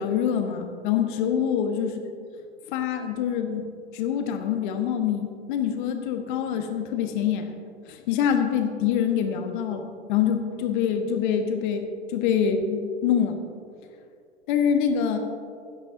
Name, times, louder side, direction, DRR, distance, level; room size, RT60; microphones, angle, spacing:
voice 1, 0.0-2.0 2.7-7.6 7.9-11.8 12.1-13.4 14.5-15.2, left 8 dB, 45° left, 6 dB, 1.2 m, -25 dB
17.0 x 11.5 x 2.7 m, 2.3 s
figure-of-eight pair, 95°, 34 cm